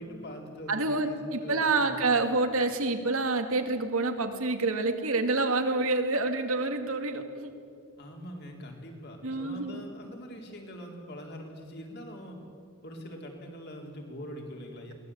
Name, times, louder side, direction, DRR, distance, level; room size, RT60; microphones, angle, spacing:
voice 1, 0.0-2.0 8.0-12.4 12.8-14.9, equal, 50° left, 1 dB, 4.0 m, -43 dB
voice 2, 0.7-7.5 9.2-9.8, right 3 dB, 75° right, 6 dB, 2.3 m, -27 dB
22.5 x 19.0 x 8.7 m, 2.3 s
head